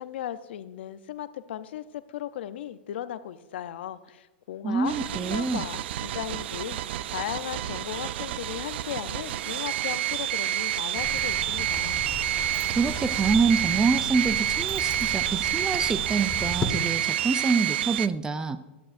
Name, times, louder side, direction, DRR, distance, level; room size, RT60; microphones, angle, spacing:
voice 1, 0.0-12.0, left 11 dB, 70° left, 13 dB, 0.6 m, -36 dB
voice 2, 4.6-5.6 12.8-18.6, right 4 dB, 10° right, 13 dB, 0.4 m, -26 dB
sound 1, 4.9-18.1, right 12 dB, 70° right, 0.4 m, -29 dB
sound 2, 10.9-16.7, left 4 dB, 20° left, 1.4 m, -37 dB
Sliding door, 10.9-15.6, right 5 dB, 55° right, 2.1 m, -53 dB
14.0 x 11.5 x 2.6 m, 1.1 s
supercardioid pair, 140°, 6 cm